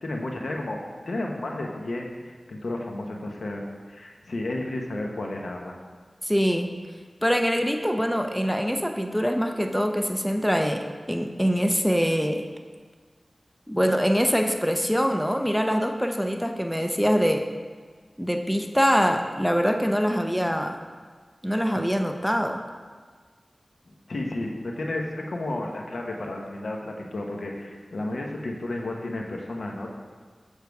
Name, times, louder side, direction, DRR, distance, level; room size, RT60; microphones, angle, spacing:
voice 1, 0.0-3.6 3.9-5.8 23.9-29.9, left 2 dB, 85° left, 1 dB, 1.0 m, -32 dB
voice 2, 6.2-6.7 7.2-12.5 13.7-17.4 18.2-20.8 21.4-22.6, equal, ahead, 4 dB, 0.6 m, -24 dB
7.3 x 6.6 x 4.7 m, 1.5 s
wide cardioid pair, 60°, 0 cm